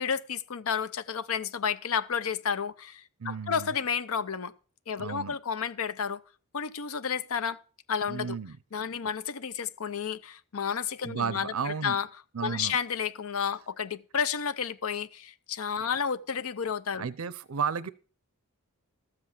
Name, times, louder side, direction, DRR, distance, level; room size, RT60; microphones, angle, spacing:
voice 1, 0.0-4.5 4.9-6.2 6.5-7.6 7.9-8.4 8.7-12.1 12.4-17.1, left 7 dB, 70° left, 0.6 m, -31 dB
voice 2, 3.2-3.7 5.0-5.4 8.1-8.6 11.0-12.0 12.3-12.8 15.8-15.9 17.0-17.9, right 6 dB, 70° right, 0.6 m, -33 dB
13.0 x 7.7 x 5.8 m
head